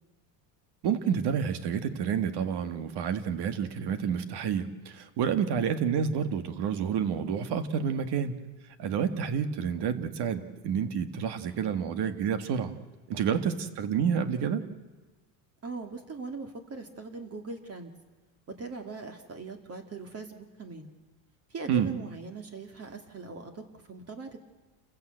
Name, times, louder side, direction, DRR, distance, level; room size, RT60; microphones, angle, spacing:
voice 1, 0.8-8.4 8.8-12.7 13.1-14.6 21.7-21.9, right 7 dB, 55° right, 10 dB, 2.0 m, -29 dB
voice 2, 15.6-17.9 18.5-20.9 21.5-24.5, right 3 dB, 30° right, 5 dB, 2.4 m, -41 dB
28.5 x 15.5 x 8.0 m, 1.3 s
cardioid pair, 125°, 47 cm